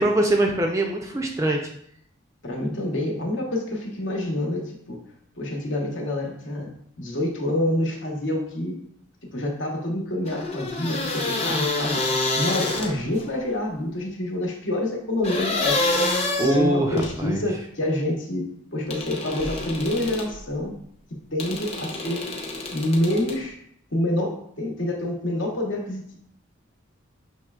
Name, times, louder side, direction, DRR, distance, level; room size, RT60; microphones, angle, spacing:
voice 1, 0.0-1.6 16.4-17.4, right 1 dB, 15° right, 1 dB, 0.4 m, -23 dB
voice 2, 2.4-5.0 5.3-8.8 9.3-12.0 12.4-15.8 16.4-20.7 21.1-22.3 22.7-23.6 23.9-26.2, left 1 dB, 60° left, 0 dB, 1.0 m, -27 dB
sound 1, 10.3-13.2 15.2-17.2 18.9-20.3 21.4-23.4, left 2 dB, 30° left, 0.6 m, -27 dB
6.2 x 3.1 x 2.3 m, 0.67 s
head